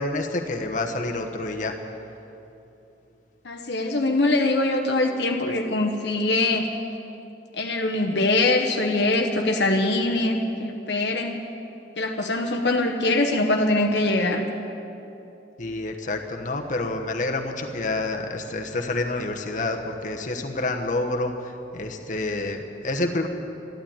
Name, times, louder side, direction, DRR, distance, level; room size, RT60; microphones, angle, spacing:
voice 1, 0.0-1.7 15.6-23.3, left 2 dB, 45° left, 2 dB, 1.1 m, -28 dB
voice 2, 3.4-6.7 7.5-11.4 12.0-14.5, left 2 dB, 65° left, 3 dB, 0.9 m, -23 dB
13.5 x 12.0 x 8.9 m, 2.9 s
head